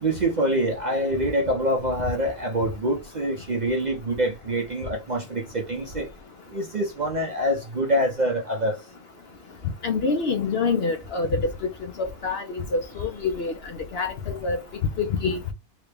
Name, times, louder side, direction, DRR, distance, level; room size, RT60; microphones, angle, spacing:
voice 1, 0.0-6.1 6.5-8.7, right 1 dB, 45° right, 0.6 m, -25 dB
voice 2, 9.8-11.5 12.0-13.5 13.9-14.1 14.4-14.6 15.0-15.4, left 4 dB, 60° left, 0.7 m, -25 dB
3.8 x 2.2 x 3.3 m
omnidirectional pair, 1.4 m